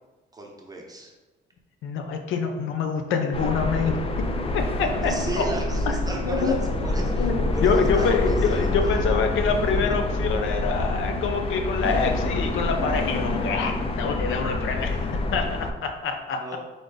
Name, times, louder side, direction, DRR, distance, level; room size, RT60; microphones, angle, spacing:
voice 1, 0.3-1.1 5.0-6.5 6.8-9.0 16.4-16.6, right 2 dB, 20° right, 0 dB, 0.9 m, -35 dB
voice 2, 1.8-4.0 4.5-5.4 5.9-6.0 6.2-6.5 7.2-15.0 15.3-16.6, left 5 dB, 80° left, 5 dB, 0.6 m, -26 dB
sound 1, 3.3-15.7, left 2 dB, 30° left, 0.4 m, -26 dB
sound 2, 3.8-15.0, right 6 dB, 50° right, 0.5 m, -41 dB
3.8 x 3.5 x 3.8 m, 1.2 s
cardioid pair, 90°, 20 cm